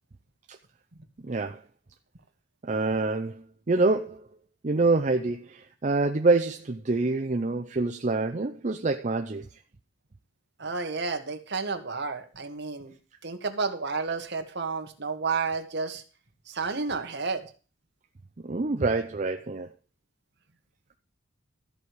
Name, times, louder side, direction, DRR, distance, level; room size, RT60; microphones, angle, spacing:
voice 1, 1.2-1.6 2.6-4.2 4.6-9.5 18.4-19.7, right 3 dB, 35° right, 0.6 m, -26 dB
voice 2, 10.6-12.9 13.2-16.0 16.5-17.4, right 4 dB, 55° right, 1.6 m, -31 dB
13.5 x 4.8 x 8.3 m
head